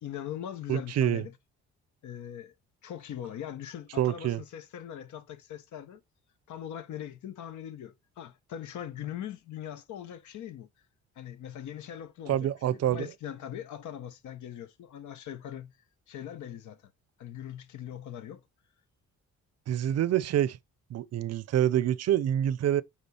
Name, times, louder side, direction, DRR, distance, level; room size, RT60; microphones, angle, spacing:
voice 1, 0.0-1.3 2.0-2.5 2.8-6.0 6.5-10.7 11.1-15.7 16.1-16.9 17.2-18.4, left 10 dB, 75° left, 1.1 m, -41 dB
voice 2, 0.7-1.2 4.0-4.4 12.3-13.1 19.7-20.6 20.9-22.8, right 11 dB, 55° right, 0.6 m, -26 dB
8.9 x 3.7 x 4.2 m
cardioid pair, 90°, 30 cm